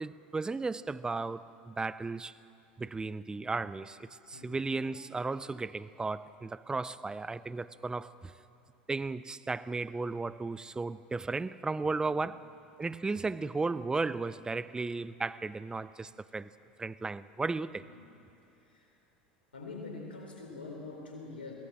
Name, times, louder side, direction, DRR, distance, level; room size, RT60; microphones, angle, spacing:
voice 1, 0.0-2.3 2.8-4.0 4.3-8.1 8.9-12.5 12.8-16.5 16.8-17.8, right 3 dB, 15° right, 0.6 m, -35 dB
voice 2, 18.6-18.9 19.5-21.5, left 3 dB, 85° left, 4.4 m, -45 dB
22.0 x 17.5 x 7.6 m
hypercardioid pair, 80°, 5 cm